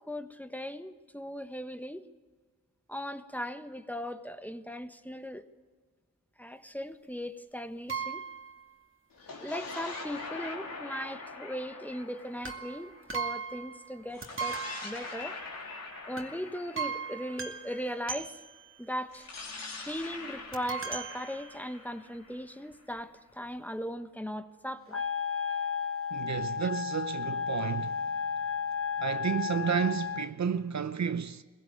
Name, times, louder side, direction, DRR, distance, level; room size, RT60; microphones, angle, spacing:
voice 1, 0.0-2.0 2.9-5.5 6.4-8.2 9.3-15.4 16.0-18.4 18.8-19.3 19.8-25.0 26.6-26.7, equal, 5° left, 1.3 m, -38 dB
sound 1, 7.9-8.6 12.4-13.9 14.2-15.7 16.2-16.4 16.8-18.8 20.5-22.0 22.7-22.8 23.0-23.1, right 6 dB, 35° right, 2.4 m, -38 dB
sound 2, 9.1-13.5 14.1-18.1 19.1-22.9, left 3 dB, 75° left, 3.5 m, -43 dB
Wind instrument woodwind instrument, 24.9-30.3, left 7 dB, 40° left, 1.1 m, -33 dB
voice 2, 26.1-28.1 29.0-31.4, right 7 dB, 55° right, 0.8 m, -31 dB
20.5 x 16.5 x 8.2 m
cardioid pair, 45°, 34 cm